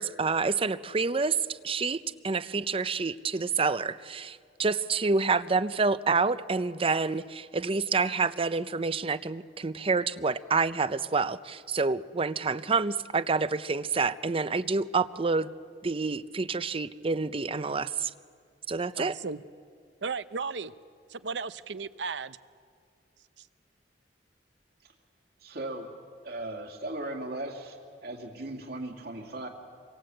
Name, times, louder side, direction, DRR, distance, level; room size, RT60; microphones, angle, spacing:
voice 1, 0.0-15.5 15.8-18.1 18.7-19.1, right 4 dB, 30° right, 14 dB, 0.6 m, -28 dB
voice 2, 19.0-19.4 20.0-20.7 21.1-22.4 23.4-23.5, right 4 dB, 80° right, 14 dB, 0.7 m, -35 dB
voice 3, 25.4-25.9 26.2-27.8 28.0-29.5, right 1 dB, 65° right, 2 dB, 2.6 m, -37 dB
27.5 x 24.5 x 7.8 m, 2.2 s
head